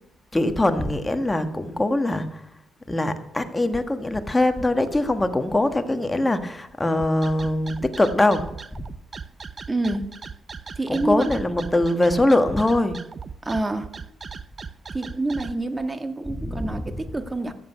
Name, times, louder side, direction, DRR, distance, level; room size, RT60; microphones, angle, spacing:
voice 1, 0.3-2.5 2.9-8.5 10.9-13.0 16.3-16.9, left 1 dB, 15° left, 1.6 m, -22 dB
sound 1, 6.9-15.5, right 5 dB, 35° right, 0.7 m, -37 dB
voice 2, 9.7-10.1 10.8-11.3 13.4-13.9 14.9-17.5, right 2 dB, 20° right, 1.7 m, -27 dB
14.5 x 7.8 x 8.5 m
cardioid pair, 85°, 0 cm